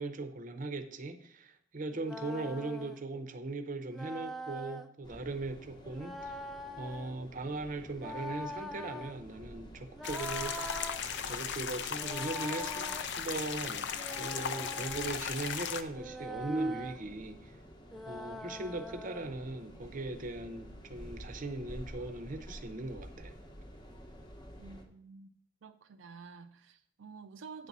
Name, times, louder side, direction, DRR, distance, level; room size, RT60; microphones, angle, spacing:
voice 1, 0.0-6.4 6.8-10.6 11.2-13.9 14.2-17.5 18.1-23.3, right 2 dB, 45° right, 0.7 m, -39 dB
sound 1, 1.9-3.0 3.9-4.9 5.9-7.1 7.9-9.2 9.9-11.0 11.9-13.1 13.9-15.3 15.9-17.0 17.9-19.3, equal, ahead, 0.4 m, -43 dB
sound 2, 5.0-24.9, equal, 25° left, 0.9 m, -51 dB
sound 3, 10.0-15.8, left 7 dB, 65° left, 0.5 m, -37 dB
voice 2, 24.6-25.3 25.6-27.7, right 5 dB, 85° right, 0.4 m, -50 dB
9.1 x 4.0 x 6.0 m
head